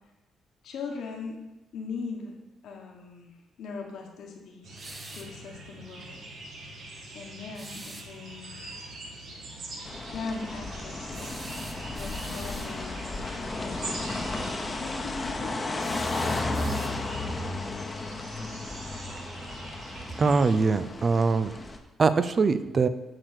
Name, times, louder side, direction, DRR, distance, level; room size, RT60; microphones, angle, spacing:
voice 1, 0.6-1.4 1.7-2.3 2.6-4.7 5.1-6.2 7.1-8.7 10.1-11.3 11.9-14.1 14.8-16.0, left 4 dB, 75° left, 1 dB, 1.4 m, -40 dB
sound 1, 4.6-20.6, right 2 dB, 70° right, 2.1 m, -44 dB
sound 2, 4.8-5.4 7.5-8.1 11.1-12.8 15.8-17.2, right 2 dB, 20° right, 1.0 m, -44 dB
sound 3, 9.9-21.8, left 2 dB, 25° left, 1.0 m, -34 dB
voice 2, 20.2-21.5 22.0-22.9, right 4 dB, 40° right, 12 dB, 0.5 m, -23 dB
7.5 x 4.7 x 6.7 m, 1.0 s
cardioid pair, 90°, 0 cm